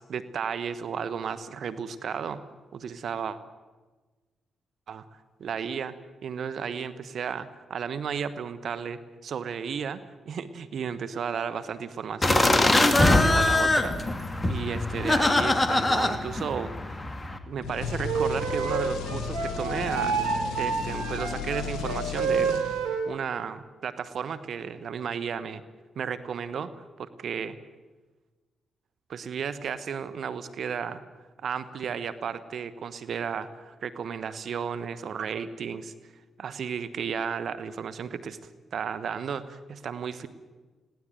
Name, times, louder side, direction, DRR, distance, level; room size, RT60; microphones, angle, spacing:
voice 1, 0.0-2.4 2.7-3.4 4.9-5.0 5.4-5.9 6.2-14.0 14.4-17.0 17.5-20.2 20.5-25.6 25.9-27.6 29.1-31.0 31.4-35.9 36.4-38.4 38.7-40.3, right 7 dB, 65° right, 13 dB, 1.3 m, -33 dB
sound 1, 12.2-17.4, left 2 dB, 25° left, 2.7 m, -23 dB
sound 2, 17.6-23.1, left 6 dB, 75° left, 1.4 m, -35 dB
Wind instrument woodwind instrument, 18.0-23.1, right 5 dB, 90° right, 3.1 m, -29 dB
20.5 x 18.0 x 9.2 m, 1.3 s
hypercardioid pair, 45°, 0 cm